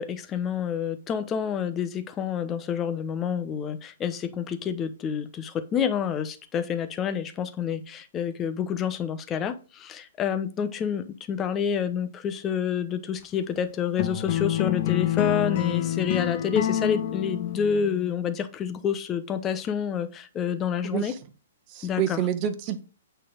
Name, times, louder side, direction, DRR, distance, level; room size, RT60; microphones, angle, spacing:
voice 1, 0.0-21.1 21.8-22.2, left 7 dB, 20° left, 0.9 m, -28 dB
sound 1, 14.0-18.1, left 11 dB, 50° left, 0.8 m, -27 dB
voice 2, 20.8-21.2 21.7-22.8, right 10 dB, 35° right, 1.2 m, -28 dB
8.4 x 4.5 x 5.1 m
hypercardioid pair, 125°, 0 cm